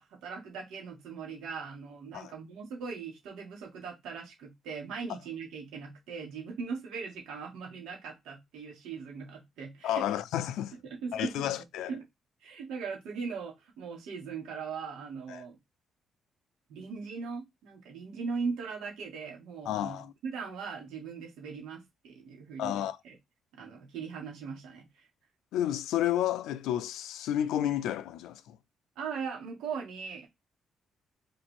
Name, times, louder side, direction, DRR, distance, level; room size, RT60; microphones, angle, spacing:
voice 1, 0.0-10.0 10.8-11.5 11.9-12.0 12.4-15.6 16.7-23.2 23.5-24.9 29.0-30.3, right 5 dB, 90° right, 1.9 m, -39 dB
voice 2, 9.8-10.7 11.1-11.9 15.3-15.4 19.7-20.1 22.6-23.0 25.5-28.6, left 11 dB, 90° left, 0.3 m, -31 dB
3.8 x 2.6 x 4.5 m
cardioid pair, 90°, 0 cm